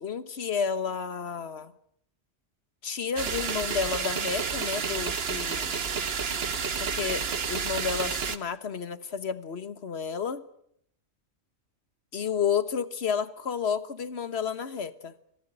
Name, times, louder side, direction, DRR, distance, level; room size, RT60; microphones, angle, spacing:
voice 1, 0.0-1.7 2.8-5.7 6.8-10.4 12.1-15.1, left 6 dB, 65° left, 14 dB, 1.5 m, -31 dB
sound 1, 3.2-8.4, right 6 dB, 60° right, 1.4 m, -30 dB
26.0 x 18.0 x 9.1 m, 0.72 s
omnidirectional pair, 1.2 m